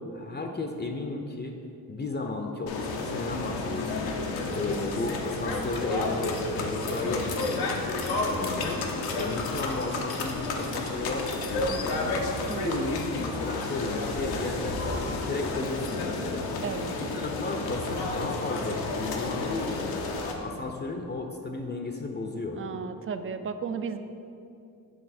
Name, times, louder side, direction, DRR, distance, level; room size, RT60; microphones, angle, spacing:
voice 1, 0.1-1.5 1.9-4.1 4.5-7.7 8.1-8.8 9.1-12.1 12.4-16.5 17.0-20.0 20.4-22.6, left 3 dB, 30° left, 3 dB, 0.5 m, -34 dB
sound 1, 2.7-20.3, left 3 dB, 90° left, 0.7 m, -31 dB
voice 2, 12.5-13.2 16.6-17.0 22.5-24.0, right 5 dB, 35° right, 10 dB, 0.4 m, -34 dB
7.6 x 3.4 x 4.2 m, 2.6 s
cardioid pair, 70°, 36 cm